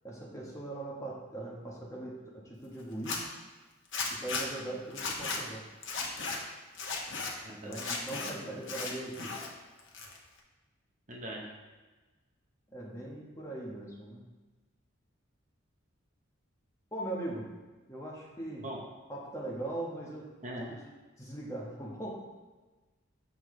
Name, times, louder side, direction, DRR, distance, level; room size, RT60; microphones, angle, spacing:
voice 1, 0.0-3.2 4.1-5.6 7.6-9.3 12.7-14.2 16.9-17.5 17.9-18.6 19.1-20.2 20.7-20.8 21.2-22.2, right 1 dB, 15° left, -4 dB, 1.2 m, -40 dB
Zipper (clothing), 2.9-3.2 3.9-4.4 4.9-5.4 5.8-6.4 6.7-7.3 7.7-8.3 8.6-9.5 9.8-10.4, left 4 dB, 60° left, 1.0 m, -35 dB
voice 2, 7.4-8.0 8.4-8.6 11.1-11.5 18.6-18.8 20.4-20.7, right 1 dB, 35° right, -1 dB, 0.8 m, -41 dB
6.7 x 5.8 x 3.2 m, 1.2 s
head